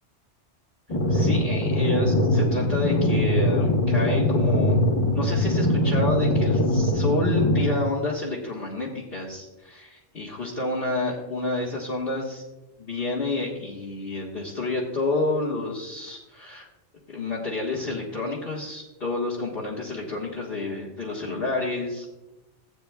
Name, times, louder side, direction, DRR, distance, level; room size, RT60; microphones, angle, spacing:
sound 1, 0.9-7.8, left 1 dB, 30° left, 1.4 m, -22 dB
voice 1, 1.1-4.8 5.1-9.9 10.1-12.4 12.8-16.7 17.1-22.1, left 2 dB, 55° left, -6 dB, 1.6 m, -29 dB
16.0 x 8.7 x 2.3 m, 1.0 s
omnidirectional pair, 1.2 m